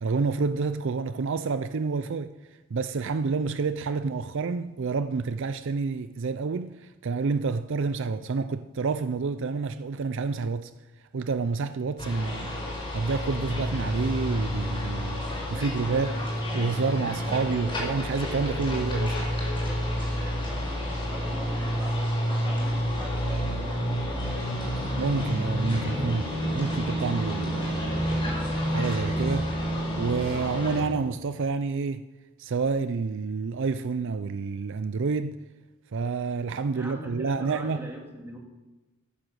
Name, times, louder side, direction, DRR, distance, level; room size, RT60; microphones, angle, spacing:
voice 1, 0.0-2.3 2.7-10.7 11.1-16.2 16.5-19.2 25.0-28.2 28.7-29.5 30.0-32.1 32.4-35.4 35.9-37.9, right 4 dB, 60° right, 0.4 m, -29 dB
sound 1, 12.0-30.8, equal, 25° left, 4.9 m, -29 dB
voice 2, 15.5-16.2 16.5-18.1 19.6-24.5 36.7-38.4, right 1 dB, 10° right, 2.4 m, -42 dB
15.5 x 9.0 x 6.5 m
head